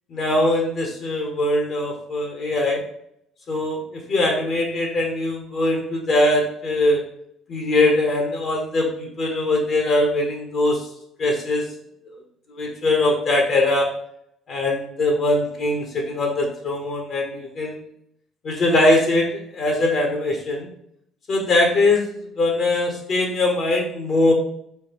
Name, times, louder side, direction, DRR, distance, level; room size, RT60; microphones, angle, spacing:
voice 1, 0.1-2.8 3.5-7.0 7.5-10.8 11.2-11.7 12.5-13.9 14.5-17.8 18.4-20.7 21.3-22.1 22.4-24.3, left 2 dB, 45° left, 1 dB, 0.8 m, -21 dB
3.8 x 3.4 x 2.9 m, 0.71 s
cardioid pair, 115°, 0 cm